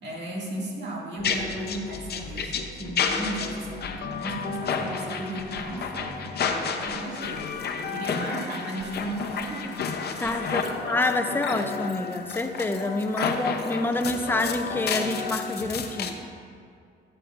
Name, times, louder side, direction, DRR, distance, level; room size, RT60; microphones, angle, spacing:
voice 1, 0.0-9.7 10.2-10.8 13.2-13.5, right 1 dB, 60° right, -3 dB, 2.3 m, -36 dB
sound 1, 1.2-16.1, left 6 dB, 55° left, 0.7 m, -31 dB
voice 2, 10.2-16.2, left 2 dB, 10° left, 7 dB, 0.6 m, -27 dB
12.5 x 8.5 x 2.5 m, 2.4 s
cardioid pair, 90°, 20 cm